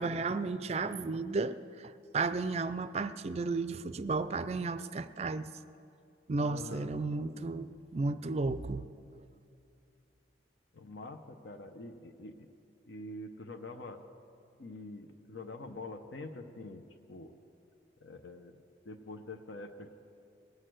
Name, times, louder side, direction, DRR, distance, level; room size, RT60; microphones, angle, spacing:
voice 1, 0.0-5.5 6.3-8.9, right 3 dB, 35° right, 13 dB, 0.4 m, -33 dB
voice 2, 6.4-6.9 10.7-12.5 12.9-14.0 14.6-16.8 17.1-17.3 18.0-18.6 18.8-20.0, left 2 dB, 75° left, 6 dB, 0.7 m, -45 dB
19.5 x 6.5 x 7.7 m, 2.5 s
head